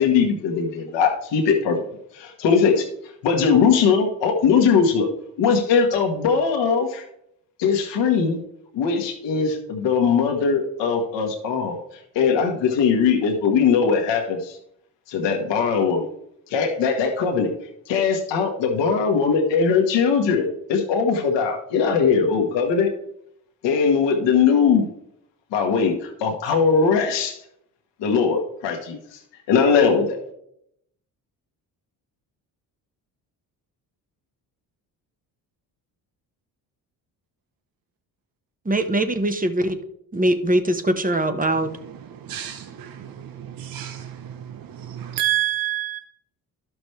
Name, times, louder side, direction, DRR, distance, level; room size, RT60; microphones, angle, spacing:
voice 1, 0.0-1.8 2.1-2.9 3.2-5.1 5.4-7.0 7.6-8.4 8.7-11.8 12.1-14.6 15.1-16.1 16.5-17.5 17.9-22.9 23.6-24.9 25.5-27.4 28.0-29.2 29.5-30.2, left 6 dB, 80° left, 1.4 m, -20 dB
voice 2, 38.7-39.8 40.1-41.7, right 1 dB, 20° right, 1.2 m, -22 dB
voice 3, 42.3-42.9 43.4-44.2 45.2-46.0, right 15 dB, 55° right, 0.9 m, -27 dB
12.0 x 6.1 x 3.3 m
supercardioid pair, 65°, 42 cm